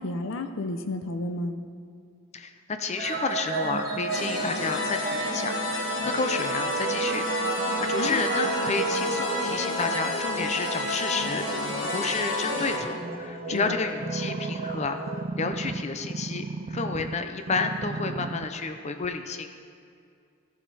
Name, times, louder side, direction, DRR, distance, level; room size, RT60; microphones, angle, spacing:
voice 1, 0.0-1.6 8.0-8.2 13.5-13.8, left 2 dB, 80° left, 8 dB, 0.7 m, -31 dB
voice 2, 2.3-5.6 6.0-19.5, left 4 dB, 35° left, 7 dB, 0.6 m, -31 dB
sound 1, 3.0-15.2, right 3 dB, 50° right, 1.2 m, -33 dB
sound 2, 4.1-12.8, left 2 dB, 65° left, 1.5 m, -30 dB
sound 3, 14.0-17.2 17.5-18.5 19.0-19.1, right 3 dB, 30° right, 0.3 m, -34 dB
13.5 x 7.5 x 4.1 m, 2.4 s
head